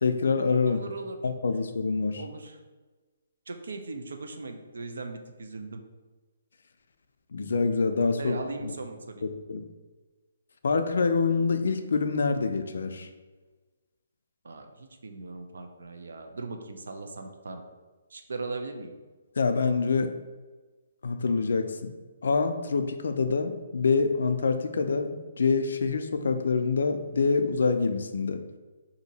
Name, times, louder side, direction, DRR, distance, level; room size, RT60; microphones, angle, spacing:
voice 1, 0.0-0.8 1.2-2.2 7.3-8.7 9.5-9.6 10.6-13.1 19.4-20.1 21.0-21.9 22.2-28.4, left 4 dB, 70° left, 8 dB, 0.3 m, -26 dB
voice 2, 0.7-1.2 2.1-2.6 3.5-5.8 8.2-9.3 14.4-17.6 18.1-18.9, right 3 dB, 85° right, 5 dB, 0.5 m, -38 dB
2.8 x 2.5 x 4.0 m, 1.3 s
hypercardioid pair, 175°, 0 cm